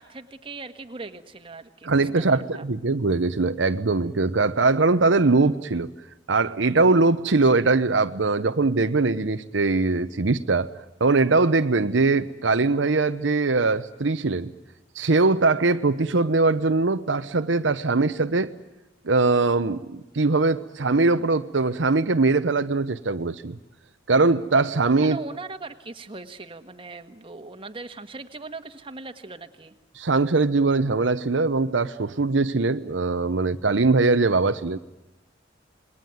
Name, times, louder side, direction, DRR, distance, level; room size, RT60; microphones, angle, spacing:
voice 1, 0.0-2.7 25.0-29.7, right 3 dB, 30° right, 7 dB, 1.6 m, -39 dB
voice 2, 1.8-5.9 6.3-10.7 11.0-14.5 14.9-18.5 19.0-23.6 24.1-25.2 29.9-34.8, right 3 dB, 75° right, 9 dB, 0.9 m, -21 dB
28.0 x 21.0 x 9.3 m, 0.95 s
head